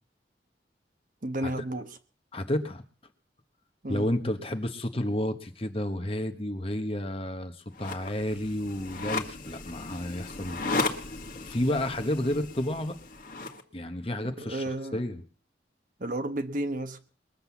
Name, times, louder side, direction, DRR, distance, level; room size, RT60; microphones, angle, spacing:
voice 1, 1.2-1.9 3.8-4.1 14.2-15.0 16.0-17.0, right 1 dB, 50° right, 8 dB, 1.3 m, -32 dB
voice 2, 2.3-2.8 3.9-11.0 11.5-13.0 13.7-14.6 14.9-15.2, left 1 dB, 30° left, 8 dB, 1.3 m, -31 dB
sound 1, 7.7-13.6, left 3 dB, 50° left, 1.7 m, -35 dB
21.5 x 7.9 x 7.1 m, 0.41 s
head